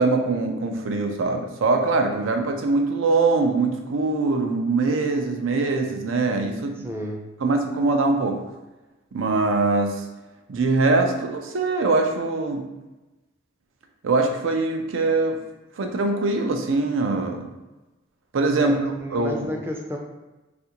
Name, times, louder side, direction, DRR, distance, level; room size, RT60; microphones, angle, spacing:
voice 1, 0.0-6.9 7.4-8.4 9.1-10.1 10.5-12.6 14.0-15.4 15.8-17.5 18.3-18.8 19.1-19.5, right 3 dB, 80° right, 4 dB, 0.5 m, -22 dB
voice 2, 6.8-7.2 18.6-20.0, equal, 10° right, 0 dB, 0.4 m, -31 dB
3.3 x 2.5 x 2.8 m, 1.1 s
head